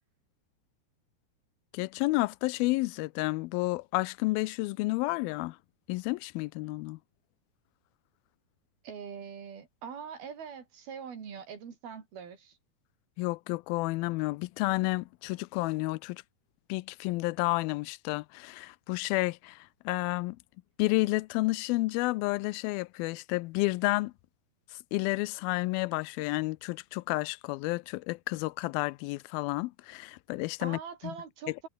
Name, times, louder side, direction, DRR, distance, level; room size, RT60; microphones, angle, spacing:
voice 1, 1.7-5.6 5.9-7.0 13.2-16.2 16.7-19.6 19.9-20.4 20.8-24.1 24.9-31.1, left 22 dB, 80° left, 2.3 m, -31 dB
voice 2, 8.8-12.6 30.6-31.7, right 7 dB, 70° right, 5.5 m, -43 dB
omnidirectional pair, 4.5 m